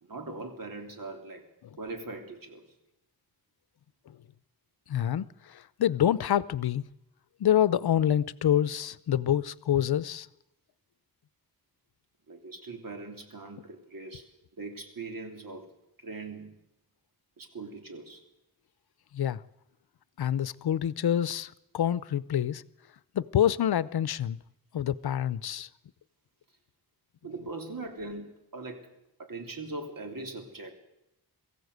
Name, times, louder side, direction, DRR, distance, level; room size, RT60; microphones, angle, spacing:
voice 1, 0.0-1.5 1.8-2.6 12.3-14.3 14.6-15.7 16.0-16.6 17.4-18.2 27.2-28.9 29.2-30.7, right 3 dB, 60° right, 3.3 m, -41 dB
voice 2, 4.9-6.8 7.4-10.3 19.1-19.4 20.2-22.6 23.1-24.4 24.7-25.7, left 10 dB, 80° left, 0.7 m, -27 dB
23.0 x 15.0 x 8.1 m
wide cardioid pair, 135°, 38 cm